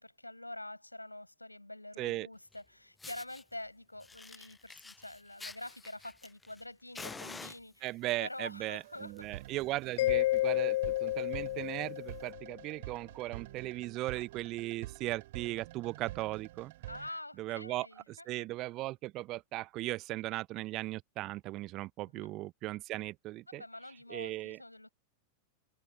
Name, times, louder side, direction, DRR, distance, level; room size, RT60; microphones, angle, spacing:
voice 1, 0.0-9.4 16.9-18.5 22.1-22.3 23.5-24.9, left 1 dB, 85° left, 6.6 m, -46 dB
voice 2, 2.0-2.3 7.8-16.7 17.4-23.6 24.1-24.6, right 18 dB, 40° right, 0.8 m, -38 dB
Fire, 2.5-2.6 3.0-3.4 4.0-6.6 6.9-8.1 8.9-9.2 9.5-9.6 10.0-10.1 10.3-10.6 11.1-11.2 12.1-12.2, left 3 dB, 10° left, 0.7 m, -48 dB
sound 1, 8.8-17.1, right 17 dB, 55° right, 7.2 m, -48 dB
Mallet percussion, 10.0-12.5, left 16 dB, 55° left, 0.7 m, -31 dB
figure-of-eight pair, 90°, 0 cm